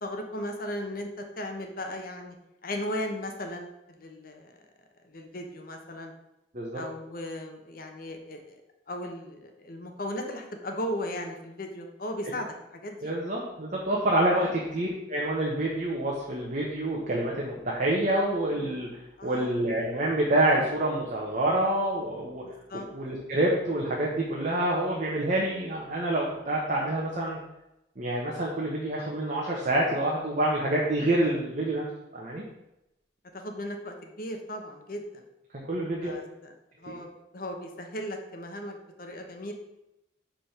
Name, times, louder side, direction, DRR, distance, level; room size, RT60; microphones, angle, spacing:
voice 1, 0.0-2.4 2.6-3.7 4.0-4.5 5.0-6.1 6.7-8.6 8.9-13.1 14.4-14.5 19.2-19.6 22.4-22.9 33.3-35.2 36.0-36.5 36.8-39.5, left 1 dB, 50° left, 4 dB, 0.9 m, -36 dB
voice 2, 13.0-22.4 22.9-27.4 28.0-31.8 32.1-32.4 35.7-36.1 36.9-37.0, right 1 dB, 45° right, -3 dB, 1.1 m, -27 dB
5.1 x 5.1 x 5.9 m, 0.89 s
head